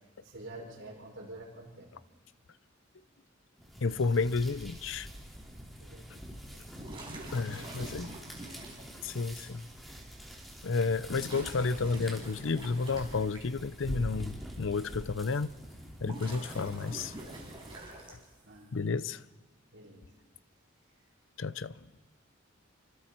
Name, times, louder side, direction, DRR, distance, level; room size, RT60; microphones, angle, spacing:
voice 1, 0.2-1.9 5.8-8.2 10.8-11.2 18.4-18.8 19.7-20.1, right 1 dB, 70° right, 6.5 m, -49 dB
sound 1, 3.6-18.0, equal, ahead, 3.5 m, -46 dB
voice 2, 3.8-5.1 7.3-8.2 9.0-9.7 10.6-15.5 16.0-17.1 18.1-18.2 18.7-19.2 21.4-21.8, left 4 dB, 70° left, 0.6 m, -31 dB
sound 2, 6.7-8.8 9.9-10.0 11.1-13.4 15.8-18.4, right 1 dB, 25° right, 4.9 m, -45 dB
28.0 x 25.0 x 4.5 m
head